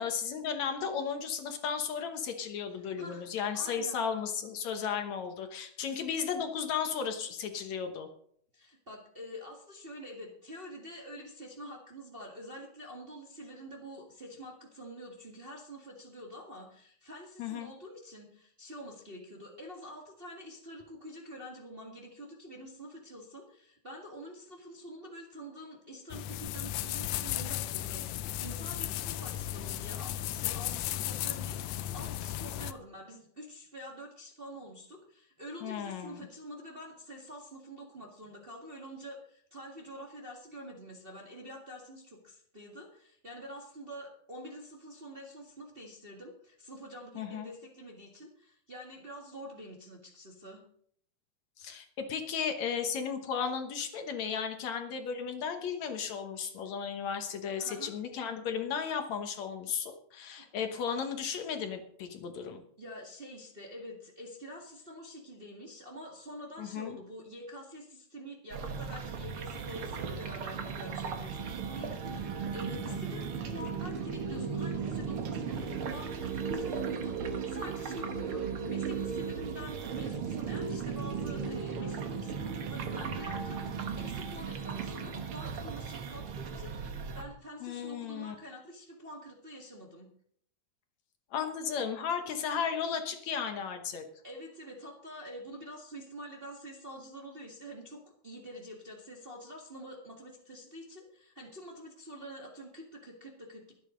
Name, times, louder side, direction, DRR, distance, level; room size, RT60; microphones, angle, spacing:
voice 1, 0.0-8.1 17.4-17.7 35.6-36.3 47.2-47.5 51.6-62.6 66.6-67.0 72.9-73.0 87.6-88.4 91.3-94.1, left 7 dB, 65° left, 6 dB, 2.3 m, -35 dB
voice 2, 2.7-3.3 3.5-4.0 8.5-50.6 57.6-57.9 60.3-60.5 62.8-90.1 94.2-103.7, equal, 25° right, -1 dB, 1.5 m, -47 dB
sound 1, 26.1-32.7, left 13 dB, 85° left, 2.2 m, -35 dB
sound 2, 68.5-87.2, right 6 dB, 55° right, 1.7 m, -36 dB
23.0 x 8.6 x 3.8 m, 0.64 s
omnidirectional pair, 3.6 m